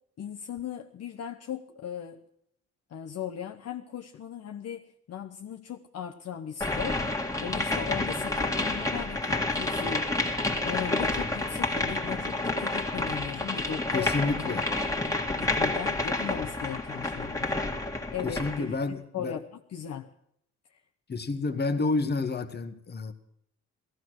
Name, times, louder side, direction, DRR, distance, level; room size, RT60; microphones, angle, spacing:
voice 1, 0.2-2.2 2.9-7.0 7.4-10.1 10.6-14.6 15.4-17.5 18.1-19.5 19.7-20.1, left 9 dB, 55° left, 3 dB, 0.9 m, -37 dB
sound 1, 6.6-18.7, left 2 dB, 10° left, 1.9 m, -29 dB
voice 2, 13.9-14.7 18.2-19.4 21.1-23.1, left 3 dB, 35° left, 8 dB, 1.3 m, -30 dB
16.5 x 14.0 x 6.3 m, 0.72 s
cardioid pair, 90°, 30 cm